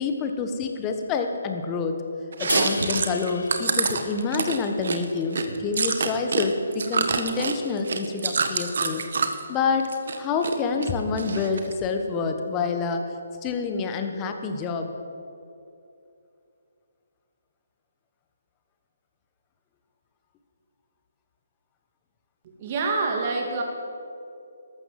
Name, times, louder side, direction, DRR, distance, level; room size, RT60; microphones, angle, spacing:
voice 1, 0.0-2.0 2.4-9.0 9.5-9.9 10.2-13.0 13.4-14.9, left 4 dB, 20° left, 5 dB, 1.3 m, -27 dB
Chewing mastication, 2.3-6.5 6.7-9.4 9.8-10.5 10.8-11.7, right 4 dB, 65° right, 1.4 m, -26 dB
sound 1, 2.5-5.8, left 3 dB, 90° left, 1.0 m, -35 dB
voice 2, 22.4-23.6, right 3 dB, 35° right, 2 dB, 2.6 m, -26 dB
13.5 x 12.5 x 7.6 m, 2.6 s
hypercardioid pair, 160°, 0 cm